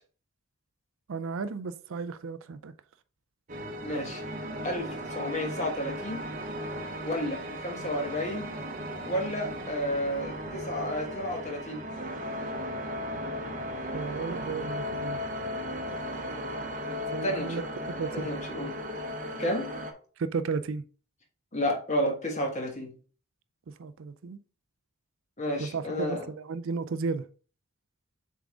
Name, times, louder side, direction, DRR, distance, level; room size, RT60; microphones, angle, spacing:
voice 1, 1.1-2.7 13.9-15.2 17.1-17.6 17.9-18.3 20.2-20.8 23.8-24.4 25.6-27.2, right 4 dB, 65° right, 0.4 m, -33 dB
sound 1, 3.5-19.9, equal, 35° right, 0.9 m, -36 dB
voice 2, 3.8-4.2 4.6-6.3 7.0-8.5 9.0-11.9 16.8-17.6 18.1-18.8 19.4-19.7 21.5-22.9 25.4-26.3, equal, 35° left, 1.4 m, -31 dB
7.0 x 3.7 x 3.7 m
head